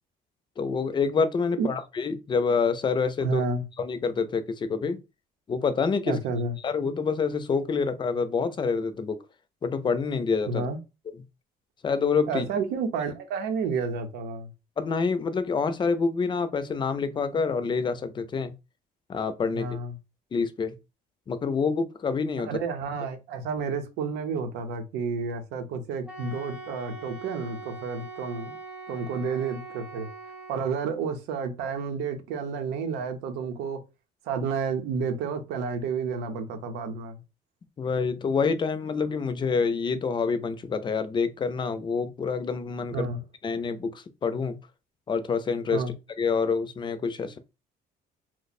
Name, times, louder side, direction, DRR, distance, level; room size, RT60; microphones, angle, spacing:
voice 1, 0.6-3.4 3.8-5.0 5.5-6.2 6.6-9.2 9.6-10.6 11.8-12.5 14.8-18.5 19.1-19.7 20.3-20.7 21.3-22.5 37.8-43.1 43.4-44.6 45.1-45.8 46.2-47.4, left 5 dB, 30° left, 0.5 m, -27 dB
voice 2, 3.2-3.6 6.1-6.6 10.5-10.8 12.3-14.5 19.5-20.0 22.4-28.6 28.9-30.1 30.5-33.8 34.2-37.2 42.9-43.2 45.7-45.9, right 5 dB, 90° right, 0.8 m, -30 dB
Wind instrument woodwind instrument, 26.1-31.0, right 2 dB, 5° right, 0.7 m, -42 dB
2.9 x 2.1 x 4.1 m
cardioid pair, 110°, 17 cm